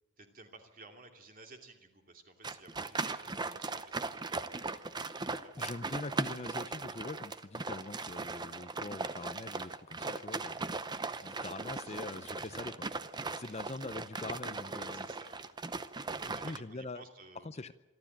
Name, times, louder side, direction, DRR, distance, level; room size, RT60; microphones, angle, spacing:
voice 1, 0.2-6.0 10.8-11.9 12.4-12.6 13.4-13.7 14.6-15.5 16.1-17.7, right 3 dB, 40° right, 4 dB, 2.7 m, -57 dB
sound 1, 2.4-16.6, right 3 dB, 20° right, 0.7 m, -38 dB
voice 2, 5.6-10.7 11.2-12.7 13.0-15.1 16.3-17.0 17.4-17.7, left 2 dB, 30° left, 12 dB, 0.6 m, -43 dB
26.0 x 12.5 x 9.0 m, 1.0 s
head